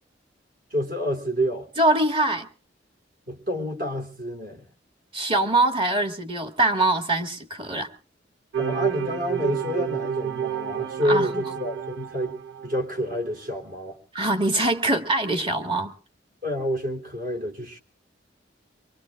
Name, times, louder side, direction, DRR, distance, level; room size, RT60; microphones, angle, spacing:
voice 1, 0.7-1.7 3.3-4.7 8.6-14.0 16.4-17.8, equal, 50° right, 2 dB, 3.1 m, -28 dB
voice 2, 1.8-2.5 5.1-7.9 11.0-11.4 14.1-15.9, right 2 dB, 30° right, 7 dB, 1.7 m, -23 dB
sound 1, 8.5-13.1, right 9 dB, 90° right, 0.8 m, -30 dB
24.5 x 23.5 x 2.4 m, 0.37 s
head